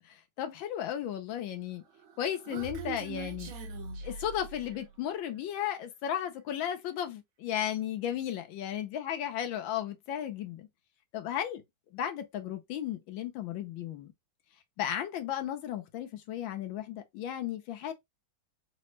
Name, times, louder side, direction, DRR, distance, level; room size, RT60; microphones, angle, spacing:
voice 1, 0.4-1.8 2.2-3.5 4.0-10.7 11.1-11.6 11.9-14.1 14.8-17.9, left 10 dB, 75° left, 1.4 m, -34 dB
Human voice, 1.9-4.9, right 5 dB, 80° right, 1.6 m, -42 dB
3.9 x 2.1 x 3.0 m
omnidirectional pair, 2.2 m